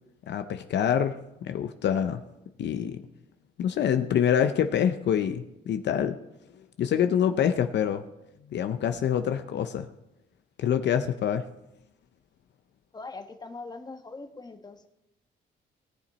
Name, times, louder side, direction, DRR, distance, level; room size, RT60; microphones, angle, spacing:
voice 1, 0.3-1.1 1.4-2.2 2.6-3.0 3.6-6.2 6.8-8.0 8.5-9.9 10.6-11.4, left 9 dB, 65° left, 8 dB, 0.6 m, -26 dB
voice 2, 12.9-14.9, left 3 dB, 20° left, 6 dB, 1.1 m, -41 dB
18.0 x 7.3 x 4.2 m, 0.91 s
cardioid pair, 90°, 20 cm